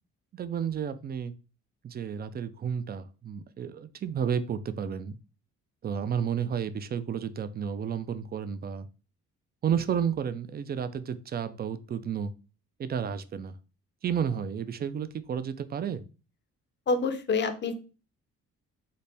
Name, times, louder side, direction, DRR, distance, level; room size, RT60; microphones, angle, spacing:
voice 1, 0.3-1.3 1.8-5.2 5.8-8.9 9.6-12.3 12.8-13.5 14.0-16.0, right 8 dB, 35° right, 13 dB, 0.4 m, -31 dB
voice 2, 16.9-17.7, left 4 dB, 40° left, 9 dB, 0.6 m, -27 dB
4.1 x 2.1 x 3.4 m, 0.34 s
cardioid pair, 90°, 30 cm